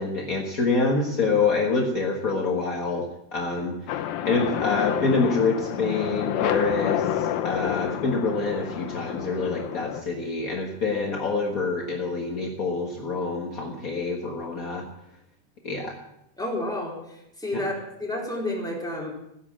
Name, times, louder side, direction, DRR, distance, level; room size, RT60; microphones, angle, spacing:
voice 1, 0.0-3.0 3.3-3.9 4.2-14.8 15.6-16.0 17.5-17.6, left 4 dB, 45° left, 0 dB, 1.1 m, -26 dB
sound 1, 3.9-10.0, left 10 dB, 85° left, 2.8 m, -29 dB
voice 2, 16.4-17.7 18.0-19.1, left 1 dB, ahead, -3 dB, 3.5 m, -30 dB
15.5 x 10.5 x 7.6 m, 0.80 s
omnidirectional pair, 4.1 m